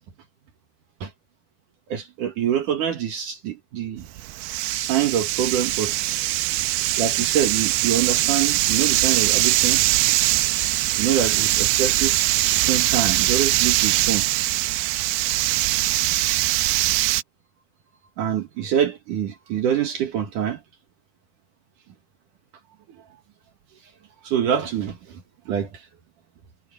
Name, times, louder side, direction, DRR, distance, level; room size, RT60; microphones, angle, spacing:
voice 1, 1.9-4.1 4.7-5.9 7.0-9.8 11.0-14.3 18.2-20.6 24.2-25.2 25.5-25.7, right 9 dB, 65° right, 2.9 m, -25 dB
sound 1, 4.0-17.2, right 18 dB, 90° right, 2.6 m, -22 dB
sound 2, 4.9-16.2, equal, 30° right, 7.9 m, -50 dB
omnidirectional pair, 4.3 m